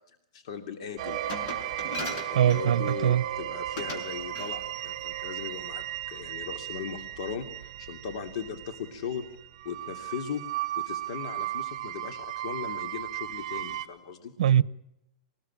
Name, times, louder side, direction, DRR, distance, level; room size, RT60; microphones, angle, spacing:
voice 1, 0.3-1.2 2.3-9.2 9.6-10.4 10.8-14.3, left 7 dB, 55° left, 2.8 m, -38 dB
sound 1, 1.0-13.8, right 13 dB, 45° right, 3.0 m, -35 dB
Glass, 1.3-3.1 3.8-4.1 4.3-4.6, left 1 dB, 35° left, 6.1 m, -38 dB
voice 2, 2.3-3.2 14.4-14.6, right 10 dB, 70° right, 1.0 m, -22 dB
27.0 x 20.5 x 8.8 m
supercardioid pair, 165°, 4 cm